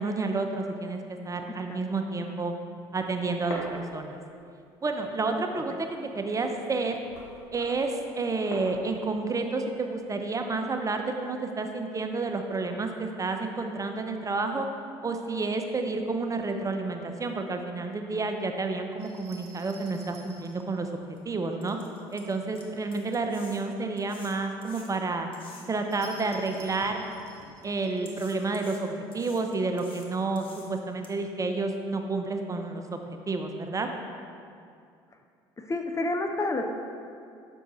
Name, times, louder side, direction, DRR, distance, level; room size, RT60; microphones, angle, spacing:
voice 1, 0.0-2.5 2.9-4.2 4.8-7.0 7.5-14.7 15.0-21.8 22.1-25.3 25.7-27.1 27.6-33.9, right 3 dB, 25° right, 5 dB, 0.6 m, -30 dB
voice 2, 1.5-1.8 5.3-5.4 35.6-36.6, left 2 dB, 25° left, 5 dB, 0.5 m, -30 dB
sound 1, 2.7-4.6 4.9-10.9, left 1 dB, 90° left, 0.8 m, -45 dB
sound 2, 19.0-20.6 25.9-28.5, right 3 dB, 65° right, 1.1 m, -52 dB
sound 3, 20.6-20.7 21.2-21.3 21.6-25.9 26.5-27.5 28.1-31.1, left 3 dB, 40° left, 1.1 m, -51 dB
6.3 x 4.5 x 4.0 m, 2.4 s
hypercardioid pair, 60°, 13 cm